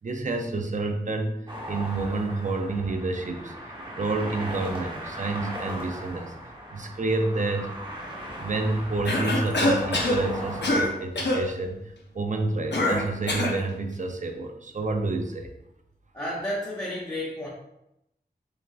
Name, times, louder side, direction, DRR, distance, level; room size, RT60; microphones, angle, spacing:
voice 1, 0.0-3.5 4.0-6.3 6.7-7.7 8.4-15.5, right 3 dB, 45° right, 5 dB, 0.5 m, -29 dB
sound 1, 1.5-10.9, equal, 30° right, 1.0 m, -38 dB
Cough, 9.1-10.2 10.6-10.9 11.2-11.4 12.7-13.6, left 1 dB, 75° left, 0.8 m, -24 dB
voice 2, 16.1-17.5, left 1 dB, 20° left, -9 dB, 1.0 m, -31 dB
6.7 x 2.3 x 2.4 m, 0.83 s
wide cardioid pair, 70°, 18 cm